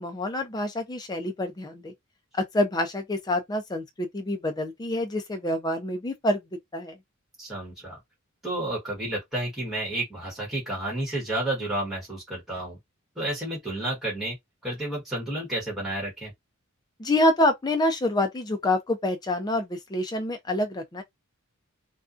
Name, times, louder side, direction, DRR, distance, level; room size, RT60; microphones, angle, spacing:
voice 1, 0.0-1.9 2.4-6.4 6.7-7.0 17.0-21.0, left 1 dB, 20° left, 0.4 m, -27 dB
voice 2, 7.4-8.0 8.4-12.8 13.2-14.4 14.6-16.3, right 1 dB, ahead, 1.2 m, -31 dB
2.5 x 2.2 x 2.4 m
head